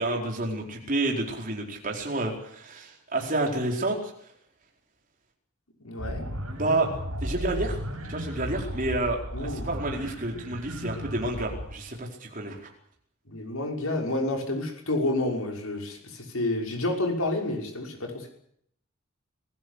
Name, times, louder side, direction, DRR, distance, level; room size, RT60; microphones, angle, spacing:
voice 1, 0.0-4.0 6.5-6.9 7.2-7.8 8.1-12.7, right 2 dB, 40° right, 1 dB, 4.6 m, -29 dB
voice 2, 5.8-6.3 9.3-9.8 13.3-18.3, left 2 dB, 75° left, 2 dB, 5.8 m, -29 dB
sound 1, 6.0-11.7, equal, 85° right, 8.0 m, -35 dB
26.0 x 16.0 x 8.3 m, 0.69 s
head